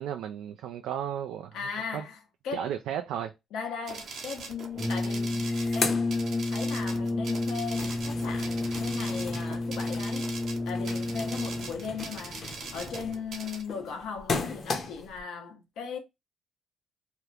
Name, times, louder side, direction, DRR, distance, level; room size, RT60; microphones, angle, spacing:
voice 1, 0.0-1.6 1.9-2.1 2.5-3.3, right 9 dB, 85° right, 0.3 m, -34 dB
voice 2, 1.5-2.7 3.5-10.2 10.6-16.0, left 6 dB, 85° left, 1.0 m, -38 dB
sound 1, 3.9-13.6, right 4 dB, 65° right, 0.9 m, -42 dB
Brass instrument, 4.7-11.9, left 2 dB, 15° left, 0.4 m, -30 dB
sound 2, 4.8-4.9 5.2-6.9 7.3-15.2, left 4 dB, 50° left, 0.9 m, -37 dB
2.9 x 2.4 x 3.3 m
cardioid pair, 90°, 0 cm